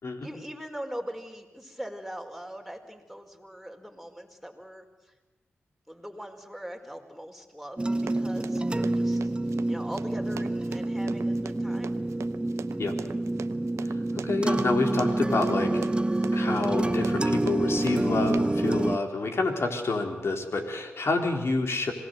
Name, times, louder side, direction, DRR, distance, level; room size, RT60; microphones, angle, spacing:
voice 1, 0.2-5.1 5.9-9.3 9.7-12.0, equal, ahead, 3 dB, 4.8 m, -41 dB
sound 1, 7.8-19.0, right 2 dB, 20° right, 0.7 m, -27 dB
Run, 8.0-18.7, right 7 dB, 80° right, 0.8 m, -42 dB
voice 2, 14.3-15.8 16.3-21.9, left 3 dB, 65° left, 3 dB, 3.9 m, -28 dB
26.5 x 19.0 x 8.0 m, 1.2 s
cardioid pair, 45°, 5 cm